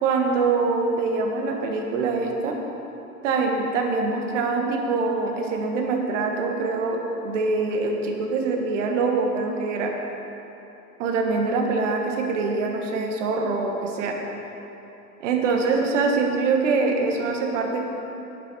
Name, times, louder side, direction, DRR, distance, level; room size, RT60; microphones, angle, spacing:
voice 1, 0.0-2.6 3.2-9.9 11.0-14.2 15.2-17.8, right 4 dB, 50° right, 2 dB, 1.6 m, -24 dB
11.0 x 9.4 x 4.6 m, 3.0 s
figure-of-eight pair, 100°, 48 cm